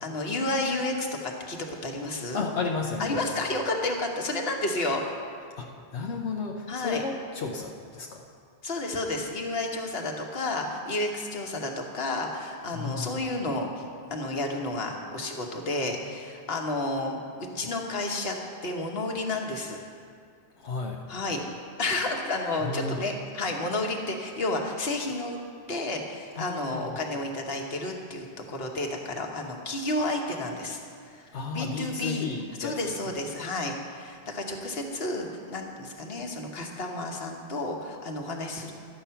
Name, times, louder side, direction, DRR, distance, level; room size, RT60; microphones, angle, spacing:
voice 1, 0.0-2.4 3.0-5.0 6.7-7.0 8.6-13.8 14.1-17.2 17.5-18.4 18.6-19.8 21.1-21.4 21.8-25.4 25.7-30.8 31.1-31.3 31.5-32.3 32.6-38.7, left 2 dB, 65° left, 2 dB, 1.4 m, -31 dB
voice 2, 2.3-3.3 5.6-8.2 12.7-13.1 20.6-21.0 22.6-23.1 26.4-27.0 31.3-32.9, left 4 dB, 85° left, 0 dB, 1.1 m, -33 dB
12.5 x 8.4 x 5.7 m, 2.3 s
omnidirectional pair, 1.1 m